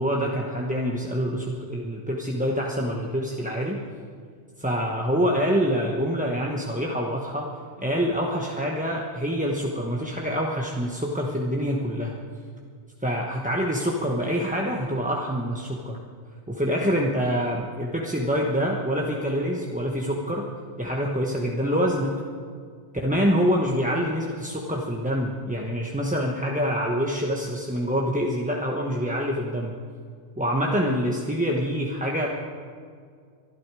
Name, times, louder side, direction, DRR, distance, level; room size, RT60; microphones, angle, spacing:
voice 1, 0.0-3.8 4.6-7.5 7.8-12.2 13.0-16.0 16.5-20.5 20.8-22.2 23.0-29.8 30.4-32.3, equal, 5° right, -1 dB, 1.0 m, -26 dB
24.5 x 11.5 x 4.8 m, 2.1 s
omnidirectional pair, 1.5 m